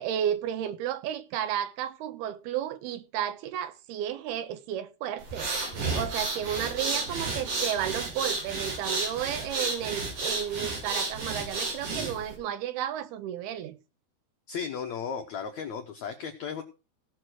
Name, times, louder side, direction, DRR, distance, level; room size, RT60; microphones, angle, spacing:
voice 1, 0.0-13.8, right 10 dB, 80° right, 2.8 m, -33 dB
sound 1, 5.2-12.3, right 3 dB, 50° right, 4.3 m, -32 dB
voice 2, 14.5-16.6, left 6 dB, 85° left, 1.6 m, -35 dB
17.0 x 6.3 x 4.6 m
omnidirectional pair, 4.6 m